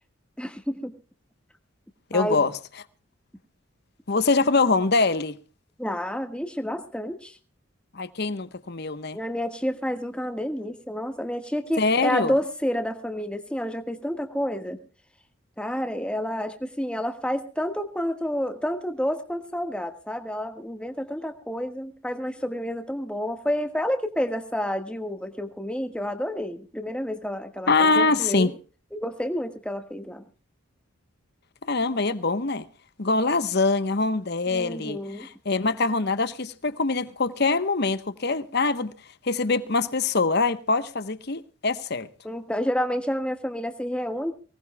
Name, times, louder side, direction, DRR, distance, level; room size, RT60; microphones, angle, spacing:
voice 1, 0.4-0.9 2.1-2.4 5.8-7.4 9.1-14.8 15.6-28.5 28.9-30.2 34.5-35.3 42.2-44.3, equal, 5° left, 1.4 m, -29 dB
voice 2, 2.1-2.5 4.1-5.4 7.9-9.2 11.8-12.3 27.7-28.5 31.7-32.6 33.0-38.9 39.2-42.1, left 3 dB, 50° left, 1.0 m, -24 dB
24.0 x 19.0 x 2.2 m
head